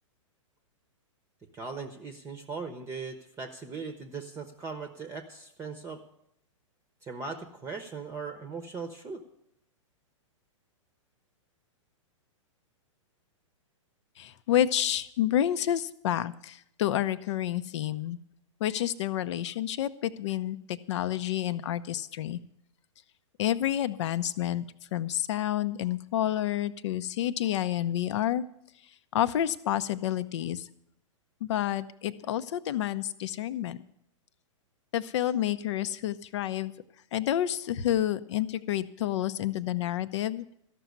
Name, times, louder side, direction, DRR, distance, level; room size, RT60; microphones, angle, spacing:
voice 1, 1.5-6.0 7.0-9.2, right 4 dB, 15° right, 7 dB, 0.8 m, -39 dB
voice 2, 14.2-18.2 18.6-22.4 23.4-24.6 24.9-28.4 29.1-30.7 31.4-33.8 34.9-36.7 37.1-40.5, left 11 dB, 60° left, 14 dB, 0.7 m, -29 dB
13.5 x 6.1 x 9.3 m, 0.75 s
hypercardioid pair, 125°, 17 cm